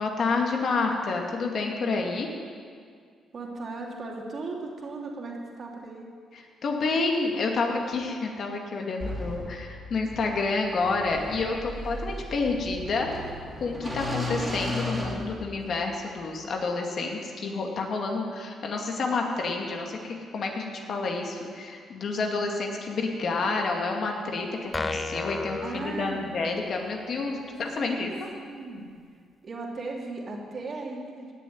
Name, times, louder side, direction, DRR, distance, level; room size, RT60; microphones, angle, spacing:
voice 1, 0.0-2.3 6.3-13.2 13.6-28.1, left 3 dB, 55° left, 1 dB, 2.2 m, -29 dB
voice 2, 3.3-6.1 22.2-22.4 25.6-26.3 27.8-28.9 29.4-31.3, right 3 dB, 45° right, -1 dB, 2.9 m, -37 dB
sound 1, 9.0-15.9, left 1 dB, 10° right, 3.5 m, -35 dB
sound 2, 24.7-26.7, left 3 dB, 25° left, 0.8 m, -33 dB
16.5 x 7.0 x 9.4 m, 2.1 s
cardioid pair, 90°, 0 cm